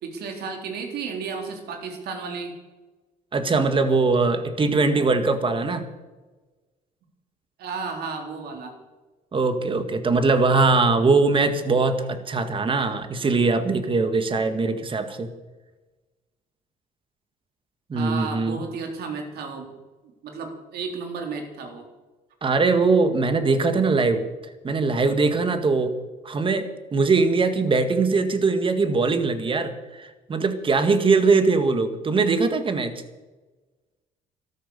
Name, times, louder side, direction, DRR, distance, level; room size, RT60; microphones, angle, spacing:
voice 1, 0.0-2.5 7.6-8.7 17.9-19.7 20.2-21.9, right 5 dB, 70° right, 3 dB, 3.7 m, -33 dB
voice 2, 3.3-5.9 9.3-15.3 17.9-18.7 22.4-24.2 24.6-25.9 26.2-29.7 30.0-32.9, right 3 dB, 30° right, 9 dB, 1.9 m, -21 dB
13.5 x 13.0 x 7.0 m, 1.2 s
cardioid pair, 110°, 17 cm